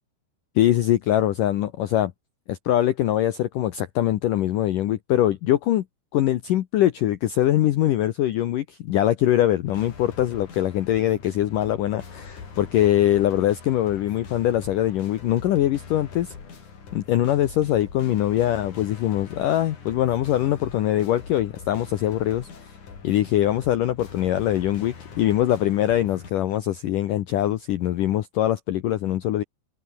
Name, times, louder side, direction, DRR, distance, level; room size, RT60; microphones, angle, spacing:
voice 1, 0.6-2.1 2.5-5.8 6.1-16.3 16.9-22.5 23.0-29.4, left 13 dB, 85° left, 1.8 m, -22 dB
sound 1, 9.7-26.3, left 5 dB, 40° left, 5.2 m, -42 dB
omnidirectional pair, 5.4 m